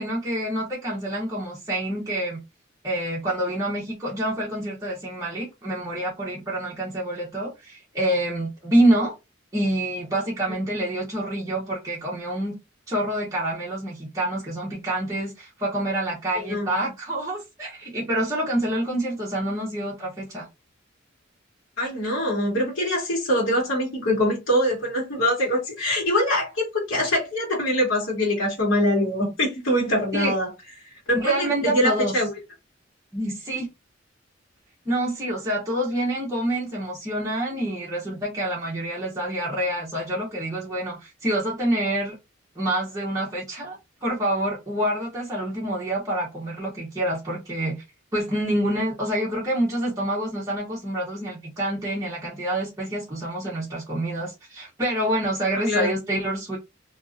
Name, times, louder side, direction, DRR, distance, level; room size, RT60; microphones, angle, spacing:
voice 1, 0.0-2.4 2.8-9.1 9.5-12.5 12.9-20.5 30.1-30.3 31.1-32.1 33.1-33.7 34.8-42.1 42.6-47.8 48.1-56.6, right 1 dB, 15° right, 0.7 m, -27 dB
voice 2, 16.3-16.7 21.8-30.5 31.1-32.3 55.7-55.9, left 1 dB, 75° left, 1.1 m, -23 dB
2.6 x 2.4 x 2.4 m
head